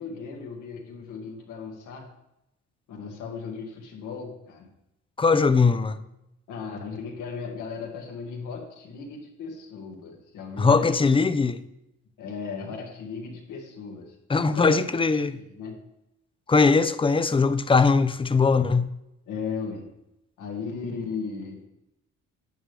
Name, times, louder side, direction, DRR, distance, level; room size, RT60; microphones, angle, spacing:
voice 1, 0.0-2.1 2.9-4.7 6.5-11.2 12.2-14.2 14.4-14.8 15.3-15.8 19.3-19.9 20.4-21.7, left 5 dB, 90° left, 2.0 m, -36 dB
voice 2, 5.2-6.0 10.6-11.6 14.3-15.4 16.5-18.9, left 4 dB, 15° left, 0.5 m, -20 dB
11.5 x 8.0 x 3.4 m
cardioid pair, 90°, 30 cm